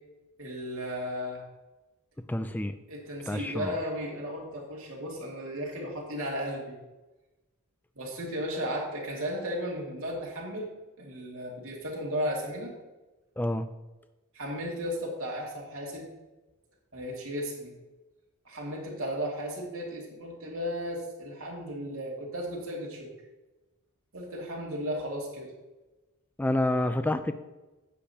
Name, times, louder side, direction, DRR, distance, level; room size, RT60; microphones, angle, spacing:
voice 1, 0.4-1.4 2.9-6.8 8.0-10.7 11.0-12.7 14.3-16.1 16.9-17.7 18.4-23.1 24.1-25.5, equal, 65° right, -2 dB, 2.3 m, -35 dB
voice 2, 2.3-2.7 3.3-3.8 13.4-13.7 26.4-27.3, left 1 dB, 10° left, 10 dB, 0.3 m, -28 dB
10.0 x 8.5 x 2.8 m, 1.1 s
head